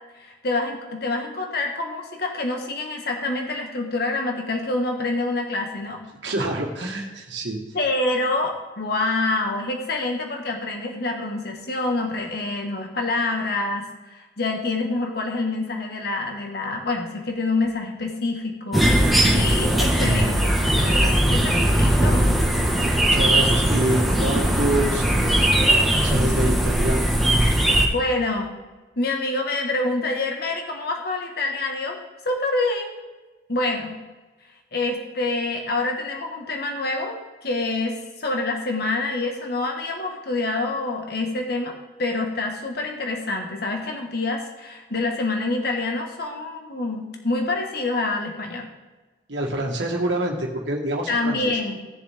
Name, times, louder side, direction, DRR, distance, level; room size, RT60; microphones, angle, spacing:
voice 1, 0.2-6.0 7.7-22.4 27.9-28.5 29.0-33.0 33.5-34.0 34.7-48.7 51.1-51.8, left 2 dB, 60° left, 2 dB, 1.6 m, -27 dB
voice 2, 6.2-7.6 23.1-25.6 25.9-27.5 49.3-51.5, right 1 dB, 90° right, -1 dB, 1.6 m, -26 dB
sound 1, 18.7-27.9, right 1 dB, ahead, 1.5 m, -19 dB
16.5 x 7.2 x 3.6 m, 1.2 s
head